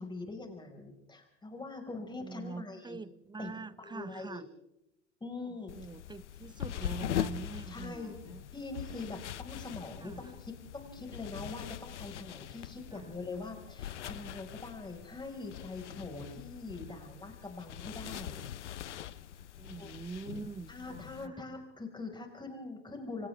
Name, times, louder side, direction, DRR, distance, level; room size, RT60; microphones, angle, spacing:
voice 1, 0.0-3.0 3.4-3.5 3.8-4.4 5.2-5.7 7.7-8.1 8.5-18.4 19.8-19.9 20.7-23.3, left 3 dB, 15° left, 5.4 m, -43 dB
voice 2, 2.2-4.5 5.7-8.4 10.0-10.3 12.9-13.1 16.9-17.0 19.4-21.5, right 4 dB, 15° right, 0.7 m, -44 dB
sound 1, 5.7-21.3, left 10 dB, 80° left, 1.0 m, -42 dB
30.0 x 25.0 x 3.6 m
hypercardioid pair, 85°, 35 cm